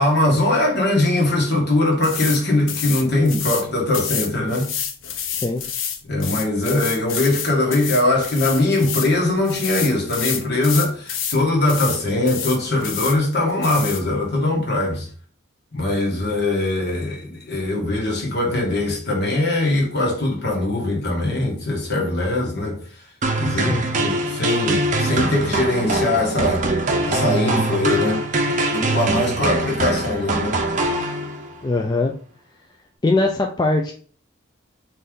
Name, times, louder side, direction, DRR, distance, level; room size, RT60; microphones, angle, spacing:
voice 1, 0.0-4.7 6.1-15.1 15.7-22.8 23.4-26.7 27.0-30.6, left 2 dB, 55° left, 1.4 m, -21 dB
sound 1, 2.0-2.4 2.7-3.6 3.9-9.1 9.4-11.4 11.7-12.0 12.3-13.2 13.6-14.0, left 8 dB, 70° left, 0.6 m, -28 dB
voice 2, 5.3-5.6 23.5-23.8 31.6-32.1 33.0-33.9, left 2 dB, 20° left, 0.3 m, -21 dB
sound 2, 23.2-31.6, right 2 dB, 40° right, 0.6 m, -23 dB
4.1 x 3.3 x 3.6 m
head